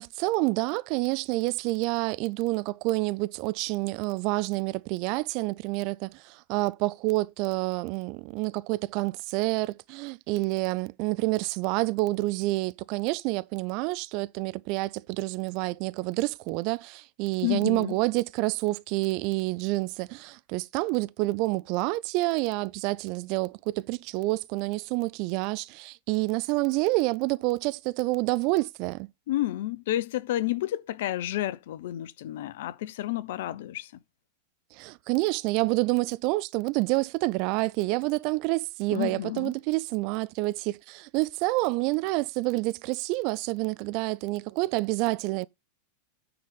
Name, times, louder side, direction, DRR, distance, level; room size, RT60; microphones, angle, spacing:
voice 1, 0.0-29.1 34.7-45.5, right 21 dB, 45° right, 0.4 m, -28 dB
voice 2, 17.4-18.0 29.3-33.9 38.9-39.5, left 14 dB, 55° left, 0.6 m, -30 dB
9.3 x 4.0 x 5.5 m
figure-of-eight pair, 90°, 0 cm